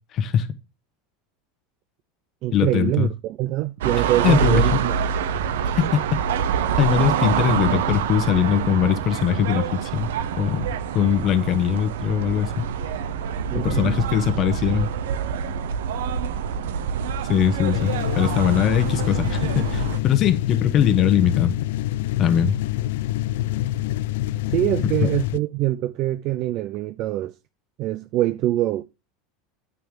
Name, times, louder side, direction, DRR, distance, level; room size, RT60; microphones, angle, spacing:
voice 1, 0.1-0.5 2.5-3.1 4.2-4.8 5.7-6.0 6.8-10.1 10.4-10.7 10.9-12.7 13.5-14.9 17.3-21.5 22.2-22.6, left 8 dB, 45° left, 1.0 m, -21 dB
voice 2, 2.4-4.9 13.5-14.0 24.5-27.3 27.8-28.8, right 15 dB, 50° right, 0.5 m, -24 dB
sound 1, 3.8-20.0, right 7 dB, 85° right, 0.7 m, -26 dB
sound 2, 17.7-25.4, left 15 dB, 75° left, 0.3 m, -26 dB
9.5 x 3.4 x 6.4 m
supercardioid pair, 110°, 0 cm